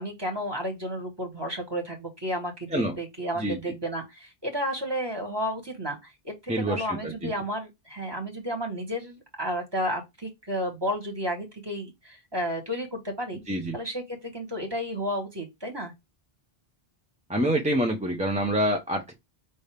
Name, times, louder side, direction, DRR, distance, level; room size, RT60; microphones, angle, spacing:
voice 1, 0.0-13.4 13.7-15.9, equal, 25° right, 1.4 m, -32 dB
voice 2, 6.5-7.3 13.5-13.8 17.3-19.1, right 1 dB, 10° right, 0.7 m, -26 dB
5.4 x 2.7 x 3.4 m
omnidirectional pair, 1.1 m